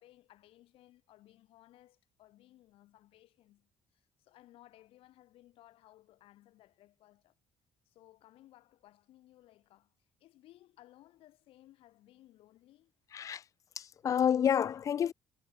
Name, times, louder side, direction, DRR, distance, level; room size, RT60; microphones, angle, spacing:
voice 1, 0.0-7.3 7.9-9.9 10.2-12.9, left 15 dB, 80° left, 5.4 m, -61 dB
voice 2, 13.8-15.1, left 8 dB, 35° left, 0.4 m, -29 dB
cardioid pair, 145°, 9 cm